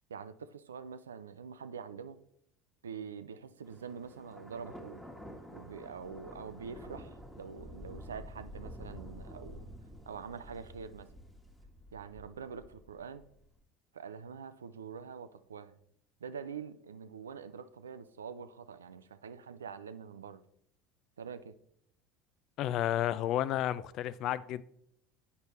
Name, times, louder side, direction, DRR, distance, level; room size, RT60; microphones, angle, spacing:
voice 1, 0.1-2.2 2.8-5.0 5.5-9.6 10.0-11.1 11.9-13.2 13.9-15.8 16.2-20.4 21.2-21.5, right 6 dB, 85° right, 0.4 m, -45 dB
Thunder, 3.6-13.5, equal, 5° left, 1.4 m, -49 dB
voice 2, 22.6-24.6, left 12 dB, 55° left, 0.3 m, -31 dB
8.0 x 5.3 x 3.1 m
hypercardioid pair, 75°, 0 cm